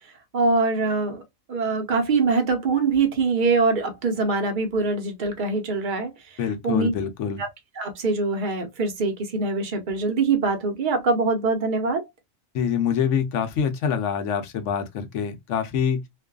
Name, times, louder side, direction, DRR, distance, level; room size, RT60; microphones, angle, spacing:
voice 1, 0.3-1.2 1.5-6.9 7.4-7.5 7.8-12.0, right 3 dB, 50° right, 0.8 m, -23 dB
voice 2, 6.4-7.4 12.5-16.0, left 7 dB, 85° left, 1.0 m, -25 dB
2.5 x 2.3 x 2.2 m
omnidirectional pair, 1.2 m